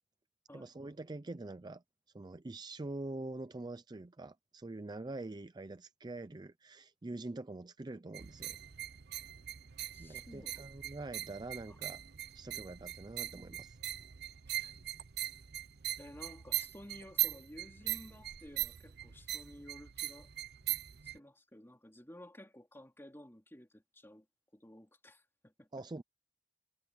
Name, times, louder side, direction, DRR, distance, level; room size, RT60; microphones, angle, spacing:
voice 1, 0.5-1.8 2.1-8.6 10.0-12.0 12.3-13.8 25.7-26.0, right 2 dB, 25° right, 0.5 m, -45 dB
sound 1, 8.1-21.2, right 14 dB, 60° right, 0.7 m, -41 dB
voice 2, 9.9-10.6 11.7-11.8 14.5-14.7 16.0-20.3 21.0-24.3 24.5-25.7, left 1 dB, 15° left, 3.0 m, -54 dB
head